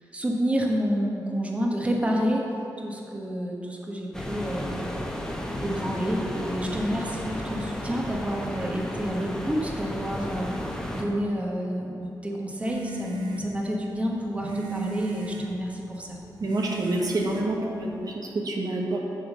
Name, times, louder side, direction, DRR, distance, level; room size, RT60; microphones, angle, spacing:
voice 1, 0.1-2.5 2.8-4.9 5.6-16.2, equal, 15° right, -1 dB, 1.1 m, -29 dB
sound 1, 4.1-11.0, equal, 5° left, 1.1 m, -33 dB
sound 2, 12.6-18.1, right 3 dB, 85° right, 0.9 m, -37 dB
voice 2, 16.4-19.0, right 2 dB, 55° right, -1 dB, 1.0 m, -27 dB
10.0 x 3.7 x 7.1 m, 2.8 s
cardioid pair, 95°, 8 cm